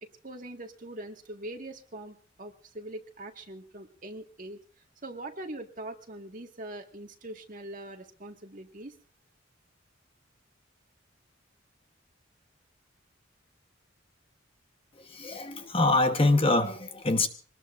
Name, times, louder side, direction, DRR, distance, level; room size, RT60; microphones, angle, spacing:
voice 1, 0.0-4.6 5.0-8.9, right 1 dB, 45° right, 3 dB, 1.9 m, -42 dB
voice 2, 14.9-17.3, left 2 dB, 30° left, 7 dB, 1.1 m, -25 dB
24.5 x 19.5 x 2.6 m, 0.38 s
head